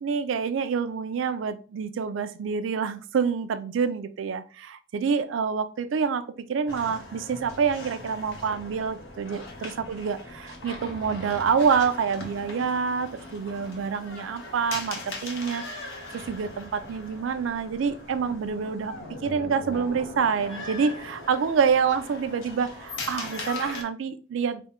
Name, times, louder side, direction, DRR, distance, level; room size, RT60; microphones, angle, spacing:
voice 1, 0.0-6.2 6.5-15.6 16.1-18.9 19.2-24.6, right 6 dB, 85° right, 12 dB, 0.4 m, -27 dB
sound 1, 6.7-23.8, left 2 dB, 80° left, 0.8 m, -40 dB
3.5 x 2.1 x 4.1 m, 0.38 s
head